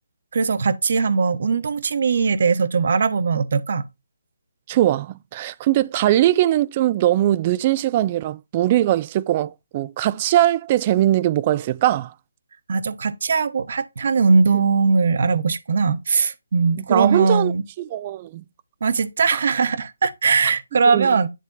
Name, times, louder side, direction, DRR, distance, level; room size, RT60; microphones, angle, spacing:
voice 1, 0.3-3.8 12.7-17.6 18.8-21.3, right 5 dB, 55° right, 1.1 m, -20 dB
voice 2, 4.7-12.1 16.9-17.5 17.9-18.4 19.3-19.4 20.9-21.1, right 13 dB, 30° right, 0.5 m, -20 dB
10.0 x 3.4 x 4.0 m
hypercardioid pair, 155°, 0 cm